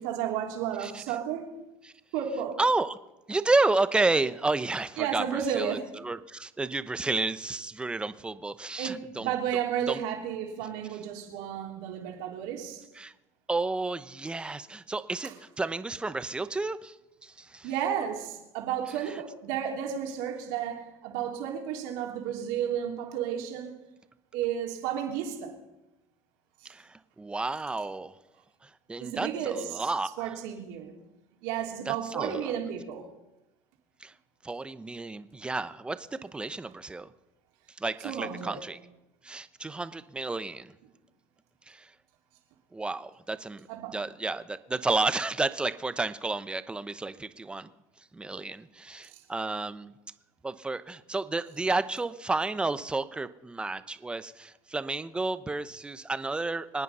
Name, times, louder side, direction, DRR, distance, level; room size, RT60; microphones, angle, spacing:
voice 1, 0.0-1.5 2.1-2.6 5.0-5.9 8.8-12.8 15.2-15.3 17.6-23.7 24.3-25.5 26.6-26.7 29.0-29.8 30.2-30.9 31.4-33.1 38.0-38.6 43.7-44.0 49.1-49.2, right 9 dB, 80° right, 3.4 m, -32 dB
voice 2, 2.6-3.0 3.3-9.3 9.9-10.0 13.0-13.1 13.5-17.0 17.2-17.7 26.6-28.1 28.6-30.4 31.9-32.5 34.0-34.1 34.4-37.1 37.8-38.8 39.2-40.7 41.7-41.9 42.7-47.7 48.1-49.9 50.4-56.8, right 3 dB, 15° right, 0.9 m, -31 dB
25.5 x 9.4 x 5.6 m
supercardioid pair, 105°, 8 cm